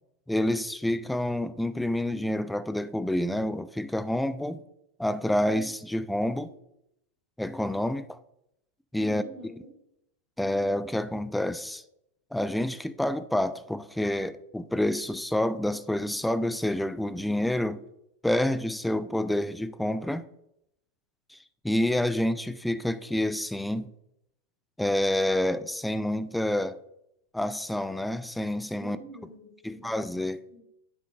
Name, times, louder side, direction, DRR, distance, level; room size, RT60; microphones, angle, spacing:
voice 1, 0.3-4.6 5.0-6.5 7.4-8.2 8.9-9.2 10.4-11.8 12.3-17.8 18.2-20.2 21.3-21.4 21.6-23.9 24.8-26.8 27.3-29.0 29.6-30.4, left 1 dB, 5° left, 0.4 m, -28 dB
voice 2, 9.1-9.7 28.8-30.1 30.5-30.6, equal, 10° right, 2.9 m, -46 dB
9.8 x 7.5 x 2.5 m
figure-of-eight pair, 90°, 0 cm